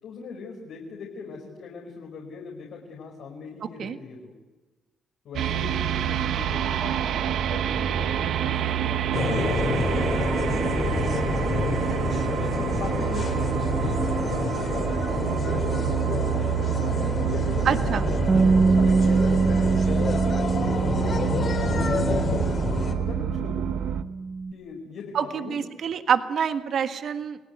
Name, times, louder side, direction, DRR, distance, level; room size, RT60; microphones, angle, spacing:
voice 1, 0.0-4.3 5.2-10.2 11.5-11.9 12.3-16.4 16.8-18.3 18.5-20.2 20.6-22.5 23.0-23.8 24.5-25.6, left 5 dB, 75° left, 0 dB, 5.0 m, -40 dB
sound 1, 5.3-24.0, right 9 dB, 80° right, 1.1 m, -27 dB
sound 2, 9.1-22.9, left 4 dB, 45° left, 3.8 m, -28 dB
voice 2, 17.6-18.1 25.1-27.4, right 7 dB, 60° right, 8 dB, 1.6 m, -26 dB
Bass guitar, 18.3-24.5, right 4 dB, 35° right, 1.0 m, -25 dB
28.5 x 18.5 x 9.5 m, 1.2 s
cardioid pair, 90°, 0 cm